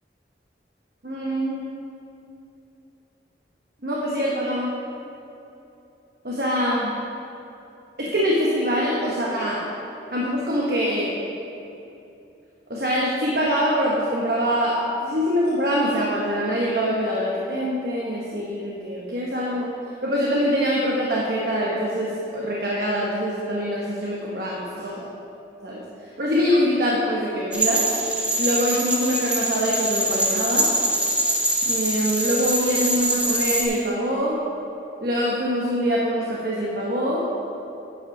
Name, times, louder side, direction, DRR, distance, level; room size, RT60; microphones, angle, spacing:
voice 1, 1.0-1.6 3.8-4.7 6.2-6.9 8.0-9.6 10.1-11.2 12.7-19.7 20.0-25.1 25.6-25.8 26.2-27.9 28.4-30.7 31.6-34.4 35.0-37.3, equal, 60° right, -4 dB, 1.1 m, -24 dB
sound 1, 27.5-33.6, right 1 dB, 5° right, 0.8 m, -24 dB
9.6 x 5.5 x 5.9 m, 2.9 s
head